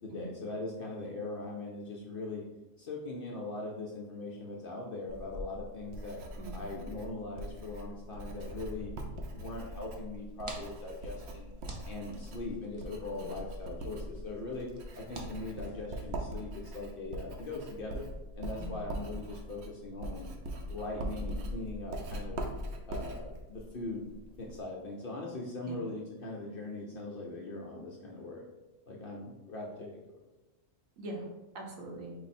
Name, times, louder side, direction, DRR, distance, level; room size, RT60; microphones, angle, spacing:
voice 1, 0.0-2.4 2.8-6.2 6.5-8.9 9.3-11.5 11.8-14.7 14.9-18.1 18.3-20.3 20.7-22.4 22.9-24.1 24.4-28.4 28.9-30.2, left 2 dB, 60° left, -2 dB, 0.6 m, -40 dB
Writing, 5.1-24.6, right 1 dB, 65° right, 0.8 m, -42 dB
sound 1, 8.4-9.7 11.3-11.9, equal, 35° left, 1.0 m, -50 dB
sound 2, 10.1-16.4, right 2 dB, 45° right, 0.4 m, -51 dB
voice 2, 31.0-32.1, right 2 dB, 80° right, 0 dB, 1.2 m, -43 dB
4.8 x 2.0 x 4.1 m, 1.1 s
omnidirectional pair, 1.4 m